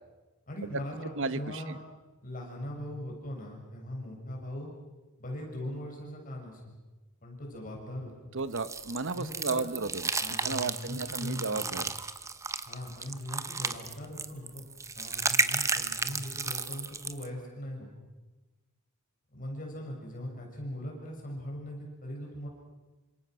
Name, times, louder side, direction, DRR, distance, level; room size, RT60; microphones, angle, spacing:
voice 1, 0.5-1.8 2.2-4.7 5.2-6.8 7.2-8.1 9.1-9.7 10.2-11.7 12.7-14.6 15.0-17.9 19.3-22.5, equal, 40° left, -1 dB, 7.1 m, -40 dB
voice 2, 1.1-1.8 8.3-10.1 10.4-11.9, right 3 dB, 60° right, 14 dB, 1.1 m, -33 dB
sound 1, 8.6-17.3, right 4 dB, 15° right, 0.8 m, -33 dB
28.0 x 26.0 x 6.3 m, 1.2 s
head